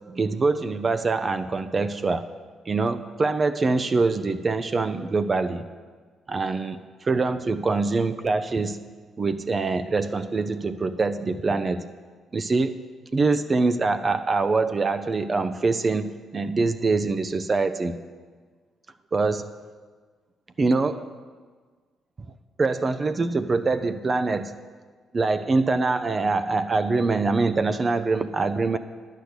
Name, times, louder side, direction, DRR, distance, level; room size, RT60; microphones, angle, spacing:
voice 1, 0.1-2.3 2.7-5.7 6.3-8.8 9.2-11.8 12.3-12.8 13.1-18.0 19.1-19.5 20.6-21.1 22.6-24.5 25.1-28.8, right 3 dB, 40° right, 10 dB, 0.5 m, -24 dB
10.0 x 6.4 x 8.1 m, 1.5 s
hypercardioid pair, 50°, 0 cm